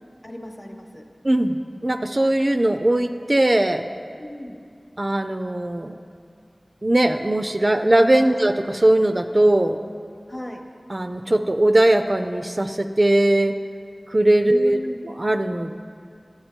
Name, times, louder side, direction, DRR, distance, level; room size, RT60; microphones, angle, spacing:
voice 1, 0.2-1.0 4.2-4.6 8.2-8.4 10.3-10.6 14.4-15.0, left 1 dB, 30° left, 4 dB, 0.9 m, -35 dB
voice 2, 1.2-3.9 5.0-6.0 6.8-9.8 10.9-13.5 14.1-14.8 15.0-15.7, right 1 dB, 40° right, 7 dB, 0.3 m, -19 dB
11.0 x 7.2 x 4.4 m, 2.3 s
wide cardioid pair, 55°, 0 cm